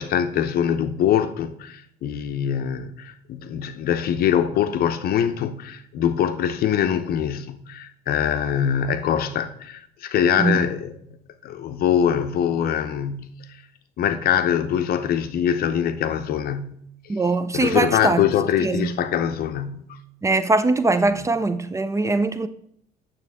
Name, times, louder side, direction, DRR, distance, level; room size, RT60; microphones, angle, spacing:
voice 1, 0.0-11.2 11.4-13.4 14.0-16.8 17.5-20.0 21.2-21.3, left 9 dB, 65° left, 0.8 m, -23 dB
voice 2, 17.1-18.2 18.6-18.9 20.2-22.5, right 3 dB, 15° right, 0.4 m, -21 dB
8.9 x 7.1 x 3.5 m
cardioid pair, 110°, 17 cm